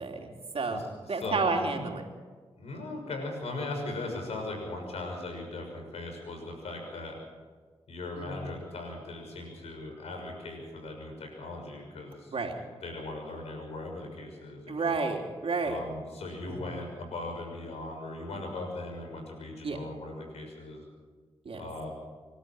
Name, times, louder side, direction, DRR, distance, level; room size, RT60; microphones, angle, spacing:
voice 1, 0.0-0.8 1.1-2.0 8.2-8.4 12.3-12.6 14.7-15.8 16.5-16.6 19.6-19.8 21.5-21.6, right 4 dB, 65° right, 2 dB, 3.4 m, -31 dB
voice 2, 0.7-1.5 2.6-7.2 7.9-14.9 15.6-20.8 21.5-21.9, left 2 dB, 90° left, 2 dB, 6.4 m, -39 dB
26.0 x 12.5 x 8.0 m, 1.5 s
cardioid pair, 50°, 10 cm